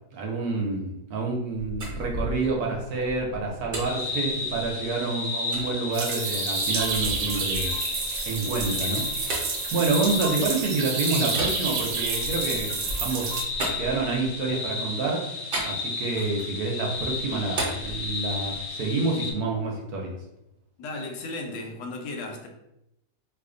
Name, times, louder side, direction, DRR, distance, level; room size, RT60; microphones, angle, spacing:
voice 1, 0.1-7.7 8.2-9.4 9.7-15.3 15.7-20.2, right 3 dB, 70° right, 0 dB, 1.0 m, -28 dB
sound 1, 1.5-4.9 5.5-5.7 6.3-10.7 11.3-14.5 15.5-16.6 16.9-18.7, right 1 dB, 50° right, 0.6 m, -36 dB
sound 2, 3.8-19.3, left 4 dB, 70° left, 1.0 m, -33 dB
sound 3, 5.9-13.4, right 5 dB, 85° right, 1.3 m, -30 dB
voice 2, 20.8-22.5, left 2 dB, 85° left, 3 dB, 1.3 m, -35 dB
2.7 x 2.5 x 3.7 m, 0.86 s
omnidirectional pair, 1.9 m